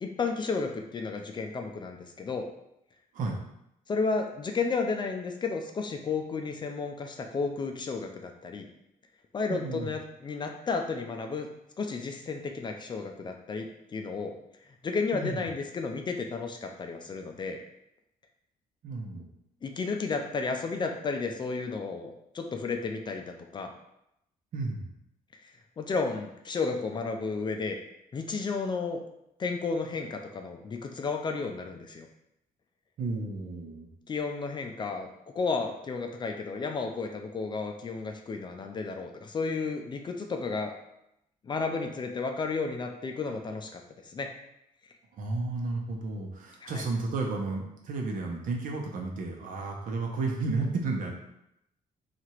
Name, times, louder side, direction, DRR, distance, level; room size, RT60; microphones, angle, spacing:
voice 1, 0.0-2.5 3.9-8.7 9.3-11.5 11.8-14.3 14.8-17.6 19.6-23.7 25.3-27.8 28.1-29.0 29.4-32.1 34.1-40.7 41.4-44.3 46.6-46.8, left 4 dB, 30° left, 4 dB, 0.4 m, -32 dB
voice 2, 9.5-9.9 15.1-15.5 18.8-19.3 24.5-24.9 33.0-33.9 45.2-51.1, right 3 dB, 65° right, 1 dB, 0.8 m, -32 dB
2.9 x 2.5 x 4.3 m, 0.80 s
cardioid pair, 130°, 15 cm